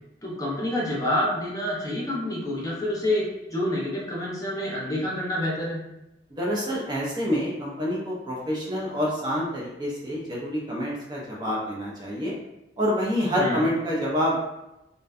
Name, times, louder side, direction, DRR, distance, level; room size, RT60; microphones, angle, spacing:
voice 1, 0.2-5.8 13.4-13.7, left 1 dB, 20° left, -5 dB, 0.6 m, -28 dB
voice 2, 6.3-12.4 12.8-14.4, equal, 25° right, -4 dB, 0.4 m, -27 dB
2.6 x 2.1 x 2.3 m, 0.91 s
head